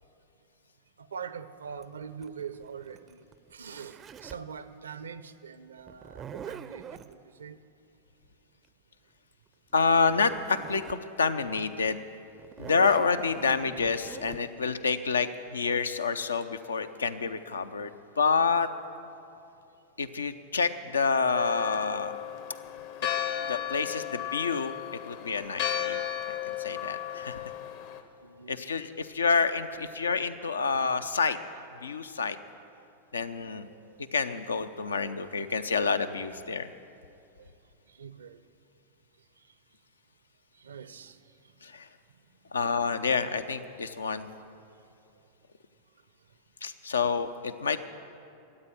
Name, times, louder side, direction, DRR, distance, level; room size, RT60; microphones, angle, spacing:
voice 1, 1.0-3.2 3.5-7.6 27.3-27.4 28.2-28.6 29.8-29.9 33.5-34.0 34.5-34.6 35.4-35.5 37.4-37.5 37.9-38.4 40.6-41.2 42.4-42.7, right 6 dB, 70° right, 14 dB, 0.6 m, -44 dB
Zipper (clothing), 1.8-4.5 5.9-7.1 9.7-9.8 10.0-11.1 11.5-11.6 12.4-14.4, right 7 dB, 25° right, 0.5 m, -44 dB
voice 2, 9.7-12.0 12.6-18.7 20.0-22.2 23.5-27.4 28.5-31.4 31.8-32.4 33.1-33.7 34.1-36.7 41.6-41.9 42.5-44.3 46.6-47.8, left 5 dB, 70° left, 11 dB, 0.6 m, -28 dB
Church bell, 21.3-28.0, left 10 dB, 50° left, 1.0 m, -34 dB
14.0 x 8.9 x 9.0 m, 2.7 s
figure-of-eight pair, 90°, 0 cm